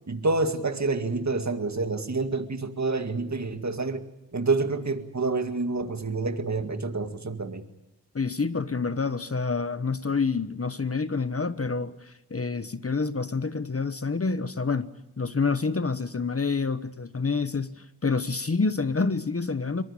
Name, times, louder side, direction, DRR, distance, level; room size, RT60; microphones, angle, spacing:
voice 1, 0.1-4.0 4.3-7.6, right 3 dB, 45° right, 2.1 m, -28 dB
voice 2, 8.1-14.9 15.2-19.8, left 4 dB, 35° left, 1.1 m, -28 dB
23.5 x 20.5 x 8.7 m
cardioid pair, 55°, 40 cm